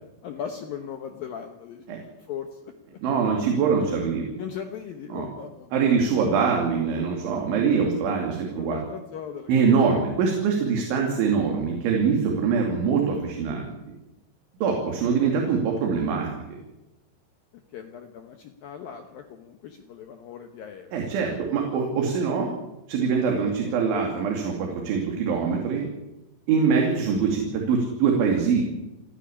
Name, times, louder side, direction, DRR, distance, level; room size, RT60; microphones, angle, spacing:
voice 1, 0.2-1.8 2.3-2.7 4.4-6.2 8.5-9.5 17.7-21.0, left 8 dB, 75° left, 6 dB, 2.1 m, -38 dB
voice 2, 3.0-4.3 5.1-5.3 5.7-8.8 9.5-13.7 14.6-16.6 20.9-22.5 22.9-25.8 26.5-28.6, right 5 dB, 70° right, 1 dB, 4.9 m, -23 dB
29.5 x 10.0 x 10.0 m, 0.98 s
omnidirectional pair, 5.6 m